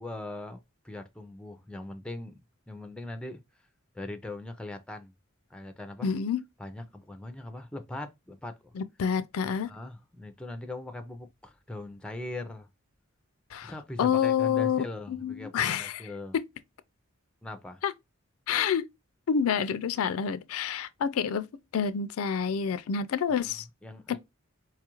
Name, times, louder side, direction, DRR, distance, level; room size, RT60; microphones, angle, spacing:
voice 1, 0.0-2.4 2.7-3.4 3.9-5.1 5.5-6.1 6.6-8.7 9.4-12.7 13.6-16.4 17.4-17.8 23.4-24.2, left 2 dB, 5° left, 0.4 m, -40 dB
voice 2, 6.0-6.4 8.8-9.7 13.5-13.7 14.0-16.0 17.8-17.9 18.5-18.9 19.3-21.5 21.7-23.6 24.1-24.2, left 7 dB, 75° left, 0.4 m, -28 dB
4.6 x 2.4 x 2.9 m
head